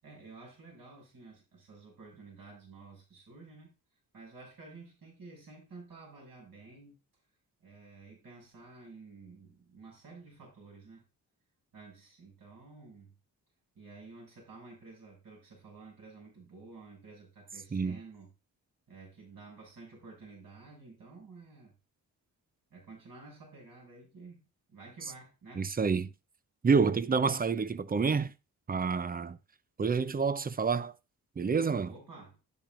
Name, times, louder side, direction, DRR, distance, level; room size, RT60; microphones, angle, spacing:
voice 1, 0.0-3.7 4.1-7.0 7.6-11.0 11.7-13.1 13.7-18.3 18.9-21.7 22.7-25.7 31.8-32.4, right 3 dB, 65° right, 6.7 m, -52 dB
voice 2, 25.6-26.1 26.6-28.3 28.7-29.4 29.8-30.9 31.4-31.9, right 5 dB, 25° right, 0.6 m, -28 dB
10.5 x 10.0 x 2.5 m
cardioid pair, 80°, 36 cm